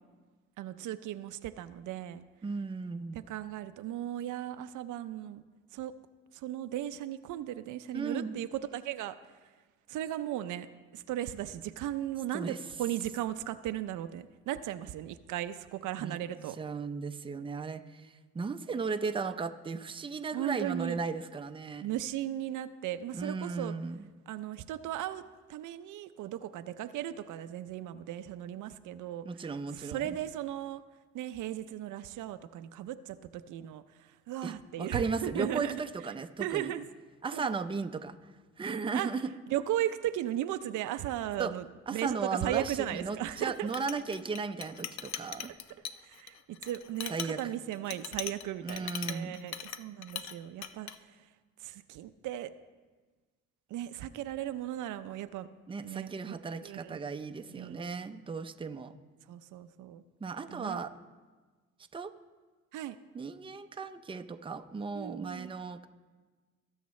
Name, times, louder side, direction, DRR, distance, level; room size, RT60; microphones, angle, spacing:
voice 1, 0.6-2.2 3.1-5.4 5.7-5.9 6.3-9.2 9.9-10.7 10.9-16.6 20.3-21.0 21.8-23.7 24.3-25.2 25.5-29.3 29.7-30.8 31.1-35.8 36.4-36.8 37.3-37.5 38.9-39.1 39.5-43.7 46.0-50.9 51.6-52.5 53.7-55.5 55.8-56.4 56.6-57.0 57.5-57.9 59.3-60.0 60.5-60.8 62.7-63.0 64.9-65.5, right 12 dB, 80° right, 11 dB, 0.5 m, -36 dB
voice 2, 2.4-3.3 7.9-8.4 12.3-12.6 16.0-16.2 16.6-21.9 23.1-24.0 29.2-30.2 34.4-36.7 37.2-39.3 41.4-41.5 41.9-45.5 47.1-47.5 48.6-49.4 55.7-58.9 60.2-60.9 61.9-62.1 63.1-65.9, right 4 dB, 15° right, 8 dB, 0.5 m, -36 dB
Chink clink, 43.4-50.4 50.6-51.0, left 9 dB, 65° left, 0.6 m, -40 dB
19.0 x 7.2 x 3.2 m, 1.4 s
cardioid pair, 90°, 30 cm